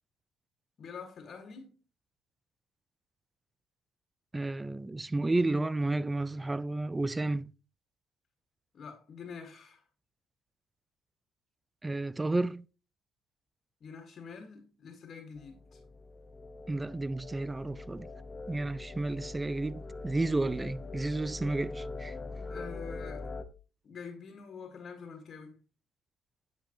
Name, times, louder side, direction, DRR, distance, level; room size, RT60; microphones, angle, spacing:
voice 1, 0.8-1.7 8.7-9.8 13.8-15.8 22.5-23.3 23.8-25.6, left 5 dB, 45° left, 1.8 m, -46 dB
voice 2, 4.3-7.5 11.8-12.7 16.7-18.1 18.5-22.1, right 2 dB, 15° right, 0.3 m, -32 dB
sound 1, 15.4-23.4, left 3 dB, 20° left, 0.8 m, -43 dB
9.0 x 7.0 x 3.0 m
cardioid pair, 110°, 0 cm